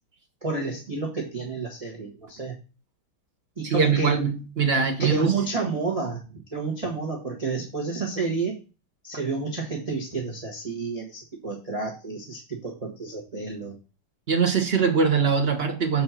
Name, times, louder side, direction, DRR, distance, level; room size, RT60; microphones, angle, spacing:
voice 1, 0.4-2.5 3.6-4.1 5.0-8.6 9.0-13.8, right 4 dB, 20° right, 1.3 m, -30 dB
voice 2, 3.6-5.3 14.3-16.0, right 6 dB, 35° right, 1.2 m, -22 dB
7.5 x 4.4 x 5.8 m
omnidirectional pair, 2.3 m